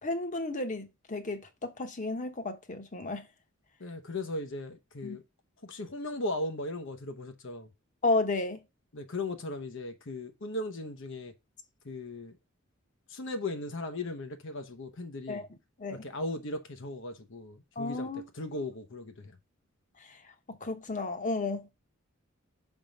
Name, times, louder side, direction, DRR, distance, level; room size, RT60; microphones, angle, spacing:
voice 1, 0.0-3.2 5.0-5.2 8.0-8.6 15.3-15.4 15.8-16.0 17.8-18.3 20.6-21.7, left 2 dB, 40° left, 1.1 m, -32 dB
voice 2, 3.8-5.2 5.6-7.7 8.9-11.3 11.8-12.3 13.1-15.5 15.9-19.4, left 2 dB, 65° left, 0.9 m, -37 dB
6.0 x 3.7 x 5.2 m
head